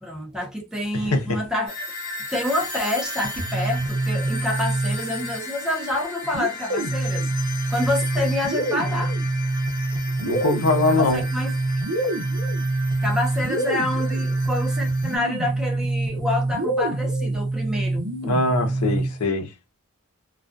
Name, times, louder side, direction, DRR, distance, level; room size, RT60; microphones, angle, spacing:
voice 1, 0.0-1.7 2.3-7.3 7.7-9.2 10.9-11.5 13.0-18.1, left 1 dB, 5° right, 0.5 m, -28 dB
voice 2, 0.9-1.4 10.2-11.2 18.2-19.5, left 2 dB, 85° left, 0.7 m, -22 dB
sound 1, 1.7-15.2, left 2 dB, 45° left, 0.9 m, -36 dB
sound 2, 3.2-5.4 6.3-19.3, right 2 dB, 75° right, 0.7 m, -25 dB
2.4 x 2.2 x 2.5 m
head